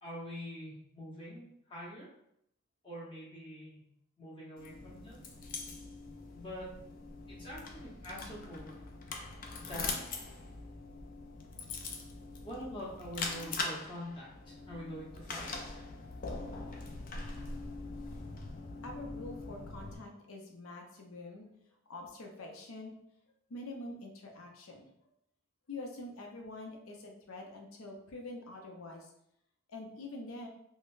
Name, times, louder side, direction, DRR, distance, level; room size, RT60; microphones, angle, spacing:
voice 1, 0.0-2.1 2.8-3.8 4.2-5.3 6.3-6.7 7.3-8.8 9.6-9.9 12.4-15.8, equal, 25° left, -6 dB, 0.9 m, -45 dB
sound 1, 4.6-20.0, left 3 dB, 40° left, 0.3 m, -42 dB
voice 2, 18.8-21.5 21.9-23.0 23.5-24.9 25.7-29.1 29.7-30.5, left 2 dB, 80° left, 2 dB, 0.6 m, -45 dB
3.7 x 2.1 x 2.5 m, 0.74 s
head